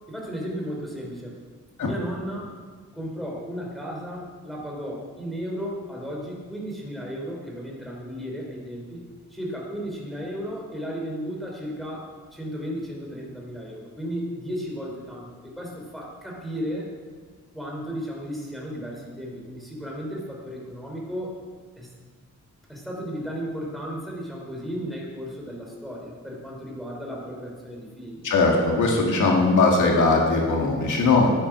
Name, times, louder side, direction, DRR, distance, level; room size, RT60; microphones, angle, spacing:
voice 1, 0.1-1.4 1.8-2.6 2.9-9.0 9.3-16.9 17.5-21.4 21.8-21.9 22.7-28.2, equal, ahead, -2 dB, 3.2 m, -34 dB
voice 2, 28.2-31.3, left 3 dB, 90° left, -1 dB, 2.3 m, -20 dB
12.5 x 9.6 x 6.0 m, 1.5 s
wide cardioid pair, 165°, 30 cm